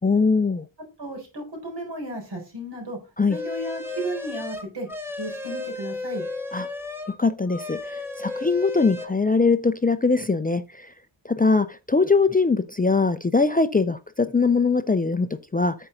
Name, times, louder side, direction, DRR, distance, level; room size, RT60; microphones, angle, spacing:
voice 1, 0.0-0.7 3.2-3.4 6.5-6.7 7.2-10.9 11.3-15.7, left 4 dB, 20° left, 0.4 m, -22 dB
voice 2, 1.0-3.0 3.3-4.9 5.2-6.2, right 1 dB, 60° right, 4.3 m, -34 dB
sound 1, 3.3-7.2 7.5-9.1, left 2 dB, 5° right, 1.2 m, -33 dB
8.7 x 5.5 x 3.9 m
wide cardioid pair, 160°, 46 cm